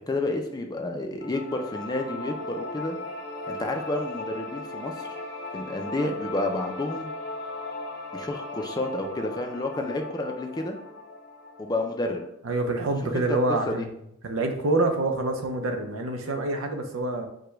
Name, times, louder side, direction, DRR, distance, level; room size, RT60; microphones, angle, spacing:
voice 1, 0.1-3.0 3.5-5.1 5.5-7.1 8.1-10.8 11.6-12.2 13.0-13.9, left 2 dB, 20° left, 3 dB, 0.5 m, -30 dB
sound 1, 1.2-12.3, left 2 dB, 55° left, 0.6 m, -38 dB
voice 2, 12.4-13.9 14.2-17.3, right 2 dB, 80° right, 5 dB, 0.7 m, -26 dB
4.9 x 2.3 x 4.6 m, 0.75 s
head